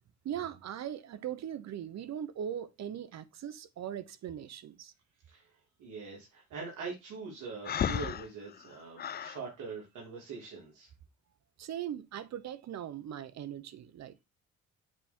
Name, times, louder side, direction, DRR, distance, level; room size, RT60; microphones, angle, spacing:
voice 1, 0.2-4.9 11.6-14.2, right 10 dB, 60° right, 0.9 m, -40 dB
voice 2, 5.8-10.9, right 4 dB, 80° right, 3.0 m, -43 dB
Breathing, 7.6-9.4, left 9 dB, 35° left, 0.4 m, -34 dB
8.0 x 3.6 x 4.4 m
cardioid pair, 90°, 30 cm